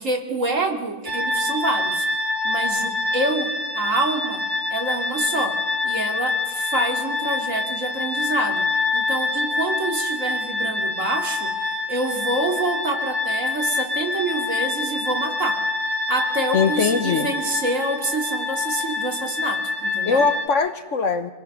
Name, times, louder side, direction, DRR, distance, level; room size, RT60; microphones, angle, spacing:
voice 1, 0.0-2.1 2.4-4.4 4.7-8.7 8.9-15.6 16.1-20.2, right 2 dB, 55° right, 3 dB, 2.8 m, -27 dB
sound 1, 1.1-20.5, left 3 dB, 15° right, 2.2 m, -26 dB
voice 2, 16.5-17.3 20.0-21.3, left 5 dB, 55° left, 10 dB, 1.3 m, -21 dB
26.5 x 20.0 x 6.6 m, 1.2 s
omnidirectional pair, 1.6 m